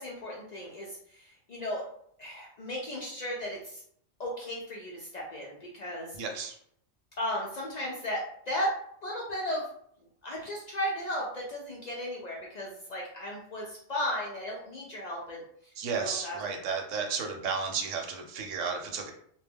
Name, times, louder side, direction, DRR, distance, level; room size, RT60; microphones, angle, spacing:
voice 1, 0.0-1.8 2.2-3.8 4.2-6.2 7.2-8.7 9.0-9.7 10.2-15.4 16.0-16.4, equal, 75° left, -3 dB, 0.4 m, -35 dB
voice 2, 6.2-6.6 15.8-19.1, right 5 dB, 75° right, 2 dB, 0.9 m, -33 dB
2.2 x 2.1 x 3.4 m, 0.67 s
omnidirectional pair, 1.3 m